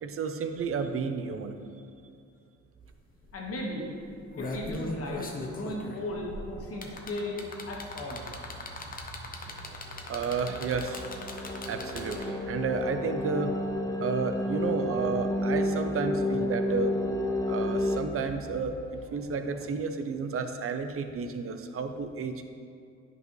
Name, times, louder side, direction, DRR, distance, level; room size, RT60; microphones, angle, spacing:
voice 1, 0.0-1.6 10.1-11.0 11.6-13.6 14.0-16.9 17.4-22.5, right 5 dB, 45° right, 7 dB, 0.6 m, -32 dB
sound 1, 2.8-2.9 3.2-3.5 4.0-12.5 13.7-13.8, left 2 dB, 30° left, 0.9 m, -39 dB
voice 2, 3.3-3.9 4.4-8.2 8.5-8.6 10.5-10.6, left 1 dB, 50° left, -1 dB, 1.5 m, -36 dB
sound 2, 4.8-19.7, right 3 dB, 75° right, 1.0 m, -48 dB
sound 3, 10.3-18.0, left 1 dB, 10° left, 0.5 m, -31 dB
9.2 x 5.5 x 3.1 m, 2.4 s
cardioid pair, 90°, 30 cm